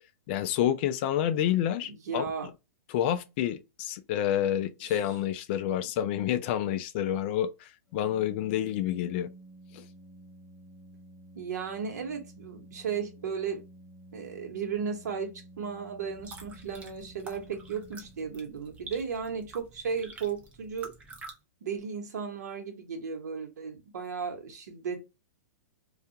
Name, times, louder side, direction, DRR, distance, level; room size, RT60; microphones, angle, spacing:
voice 1, 0.3-2.3 2.9-9.3 9.7-9.9, left 11 dB, 40° left, 0.3 m, -29 dB
voice 2, 1.9-2.5 4.8-5.0 11.3-13.6 14.1-20.9 21.6-25.0, right 6 dB, 75° right, 1.1 m, -35 dB
Organ, 7.9-18.7, right 1 dB, 20° left, 0.9 m, -52 dB
sound 1, 16.0-21.3, right 3 dB, 15° right, 0.5 m, -48 dB
2.4 x 2.2 x 2.7 m
hypercardioid pair, 150°, 9 cm